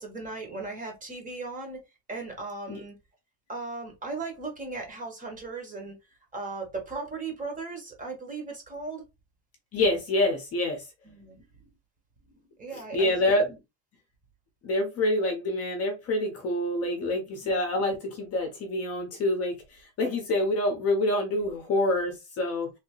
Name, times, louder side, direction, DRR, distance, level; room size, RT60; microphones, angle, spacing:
voice 1, 0.0-1.8 2.1-3.0 3.5-6.0 6.3-9.0 11.0-11.5 12.6-13.1 17.4-17.5, right 3 dB, 15° right, 0.9 m, -37 dB
voice 2, 9.7-10.9 12.7-13.5 14.6-22.7, left 1 dB, 30° left, 0.8 m, -27 dB
3.2 x 2.8 x 2.9 m
cardioid pair, 170°, 47 cm